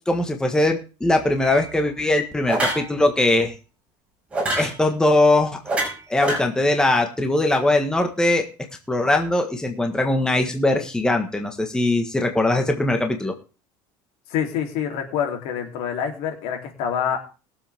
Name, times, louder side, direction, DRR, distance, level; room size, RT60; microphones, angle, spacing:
voice 1, 0.1-3.5 4.5-5.6 6.1-8.4 8.9-13.3, left 2 dB, 5° left, 4 dB, 1.5 m, -21 dB
sound 1, 1.4-1.7 2.5-2.9 4.3-4.7 5.7-6.4, right 2 dB, 10° right, 5.8 m, -24 dB
voice 2, 14.3-17.2, left 8 dB, 70° left, 3 dB, 3.3 m, -26 dB
21.5 x 7.8 x 3.6 m, 0.34 s
cardioid pair, 140°, 11 cm